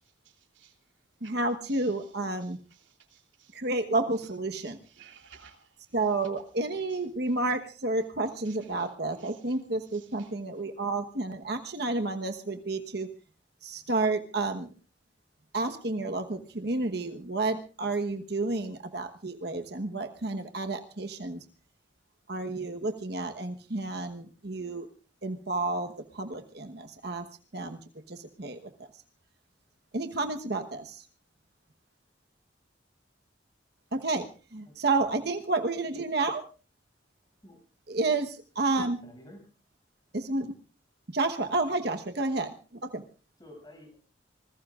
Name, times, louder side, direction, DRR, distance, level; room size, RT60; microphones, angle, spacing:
voice 1, 0.2-0.8 1.2-1.3 1.6-2.1 2.4-3.6 4.2-6.0 6.9-7.0 7.3-7.4 8.4-9.6 9.8-10.3, right 7 dB, 85° right, 3.2 m, -57 dB
voice 2, 1.2-2.6 3.5-4.8 5.9-13.1 13.6-14.7 15.5-21.4 22.3-24.9 25.2-27.2 27.5-27.8 28.1-28.6 29.9-31.0 33.9-34.3 34.5-36.4 37.9-39.0 40.1-40.5 41.1-42.5 42.9-43.0, right 2 dB, 60° right, 1.2 m, -30 dB
voice 3, 34.6-35.3 37.4-37.6 39.0-39.4 41.4-41.5 43.4-44.0, left 1 dB, 20° left, 6.9 m, -51 dB
26.5 x 19.5 x 2.5 m
head